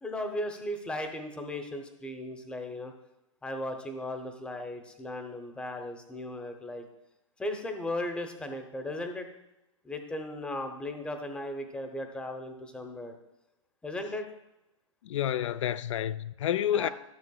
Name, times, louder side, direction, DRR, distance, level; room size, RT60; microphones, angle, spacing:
voice 1, 0.0-2.9 3.4-6.8 7.4-9.3 9.8-13.2 13.8-14.3 16.7-16.9, left 1 dB, 5° left, 0.8 m, -36 dB
voice 2, 15.0-16.9, left 11 dB, 65° left, 0.4 m, -29 dB
12.5 x 6.3 x 2.3 m
hypercardioid pair, 135°, 17 cm